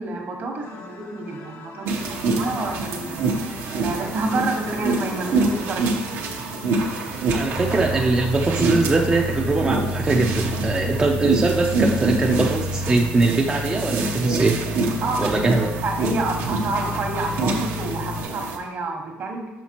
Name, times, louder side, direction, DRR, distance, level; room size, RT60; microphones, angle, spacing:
voice 1, 0.0-3.2 3.8-6.3 7.7-7.8 15.0-15.4 15.8-19.5, right 2 dB, 55° right, 1 dB, 1.3 m, -28 dB
sound 1, 0.6-11.0, left 4 dB, 70° left, 0.7 m, -43 dB
sound 2, 1.8-18.6, right 3 dB, 70° right, 0.9 m, -26 dB
voice 2, 7.3-14.6 15.2-15.7, right 3 dB, 20° right, 0 dB, 0.5 m, -22 dB
sound 3, 7.6-18.2, left 2 dB, 35° left, 0.8 m, -30 dB
5.8 x 5.6 x 2.9 m, 1.2 s
cardioid pair, 100°, 4 cm